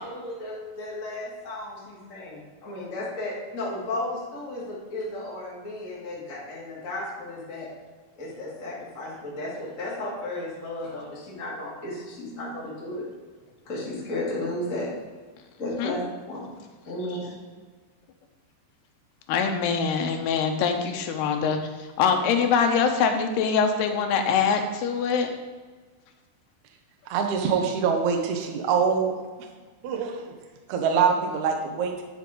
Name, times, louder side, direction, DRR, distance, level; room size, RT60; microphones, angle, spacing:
voice 1, 0.0-7.7 8.2-13.0 13.6-14.9 15.6-16.0 16.3-16.5 16.8-17.3, left 1 dB, 25° left, -7 dB, 1.8 m, -34 dB
voice 2, 19.3-21.6 22.0-25.3, left 6 dB, 80° left, 5 dB, 2.7 m, -23 dB
voice 3, 27.1-29.2 29.8-30.3 30.7-32.0, right 6 dB, 90° right, 3 dB, 1.6 m, -24 dB
11.0 x 5.6 x 3.8 m, 1.4 s
omnidirectional pair, 4.9 m